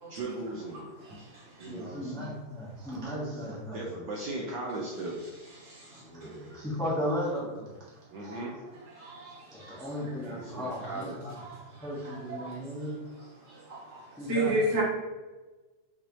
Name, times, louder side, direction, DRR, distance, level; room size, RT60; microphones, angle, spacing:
voice 1, 0.1-0.8 1.6-2.3 3.4-5.2 8.1-8.5 10.2-11.2, right 2 dB, 70° right, -3 dB, 1.2 m, -38 dB
voice 2, 1.0-1.7 5.6-6.3 8.2-8.4 9.0-9.8 11.4-11.6 12.0-12.6 13.5-14.8, right 1 dB, 40° right, -5 dB, 1.4 m, -34 dB
voice 3, 1.6-3.9 5.9-8.3 9.5-11.3 11.6-13.3 13.6-13.9 14.1-14.6, equal, 5° left, -7 dB, 0.6 m, -36 dB
5.9 x 2.8 x 3.1 m, 1.2 s
omnidirectional pair, 2.4 m